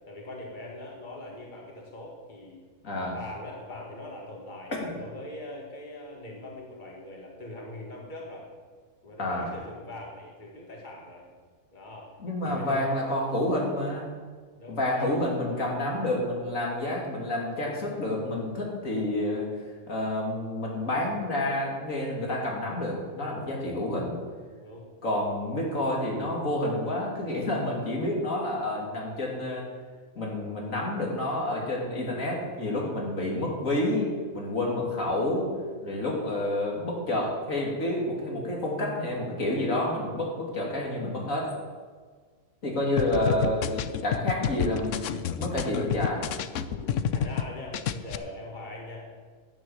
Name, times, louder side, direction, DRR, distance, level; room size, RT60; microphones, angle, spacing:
voice 1, 0.1-2.6 3.1-8.5 9.0-11.3 11.7-12.1 12.4-12.9 14.6-15.2 15.6-15.8 24.5-25.0 46.7-49.0, left 1 dB, 35° left, -2 dB, 2.2 m, -42 dB
voice 2, 2.8-3.2 4.8-4.9 9.2-9.5 12.2-14.1 14.7-19.5 19.9-24.2 25.0-29.7 30.2-35.5 35.8-41.5 42.6-46.2, left 1 dB, 90° left, -2 dB, 3.1 m, -29 dB
sound 1, 43.0-47.5 47.7-48.2, left 9 dB, 70° left, 1.0 m, -29 dB
11.0 x 9.5 x 7.0 m, 1.5 s
omnidirectional pair, 1.4 m